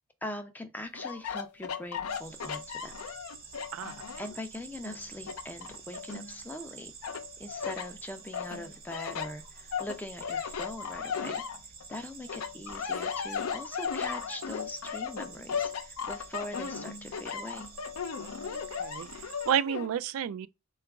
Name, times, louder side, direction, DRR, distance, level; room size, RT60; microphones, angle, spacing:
voice 1, 0.2-2.9 4.2-11.4 11.9-17.7, left 1 dB, 10° left, 0.4 m, -42 dB
sound 1, 0.9-4.4 4.8-6.6 7.0-7.9 8.3-12.0 12.3-19.9, left 6 dB, 90° left, 0.5 m, -36 dB
sound 2, 2.1-19.5, right 5 dB, 45° right, 0.9 m, -49 dB
voice 2, 3.7-4.0 18.5-20.5, right 9 dB, 75° right, 0.3 m, -31 dB
3.8 x 2.4 x 3.4 m
head